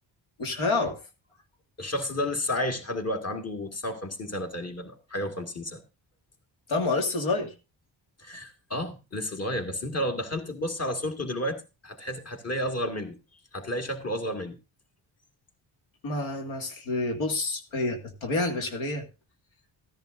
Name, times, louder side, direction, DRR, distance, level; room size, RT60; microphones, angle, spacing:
voice 1, 0.4-1.0 6.7-7.5 16.0-19.0, left 3 dB, 85° left, 3 dB, 2.2 m, -28 dB
voice 2, 1.8-5.8 8.2-11.6 11.8-13.2 13.5-14.6, left 1 dB, 30° left, 6 dB, 2.3 m, -31 dB
15.5 x 10.5 x 2.6 m, 0.29 s
cardioid pair, 70°, 47 cm